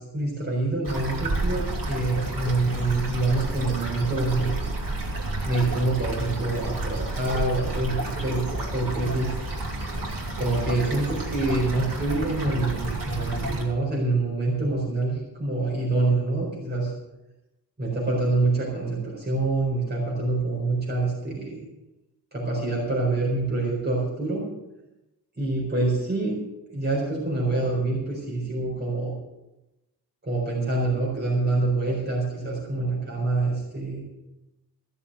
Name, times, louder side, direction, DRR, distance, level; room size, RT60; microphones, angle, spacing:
voice 1, 0.0-4.6 5.4-9.4 10.4-16.9 17.8-21.6 22.3-24.4 25.4-26.3 26.7-29.1 30.2-34.0, right 2 dB, 25° right, -4 dB, 4.5 m, -26 dB
sound 1, 0.8-13.6, right 2 dB, 55° right, 2.6 m, -30 dB
15.0 x 7.0 x 7.9 m, 0.95 s
wide cardioid pair, 175°, 40 cm